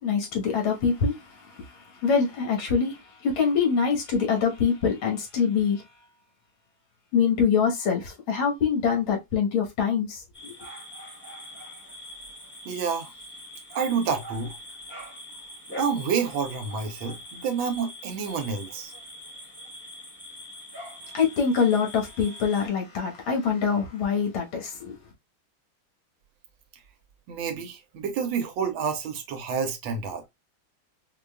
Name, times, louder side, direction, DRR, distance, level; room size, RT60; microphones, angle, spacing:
voice 1, 0.0-5.8 7.1-10.6 21.1-25.0, left 6 dB, 85° left, 2.0 m, -25 dB
sound 1, 10.3-22.7, equal, 10° left, 0.7 m, -43 dB
voice 2, 12.6-13.1 13.7-14.6 15.8-18.9 27.3-30.3, right 6 dB, 85° right, 1.6 m, -29 dB
5.2 x 2.3 x 2.2 m
omnidirectional pair, 2.2 m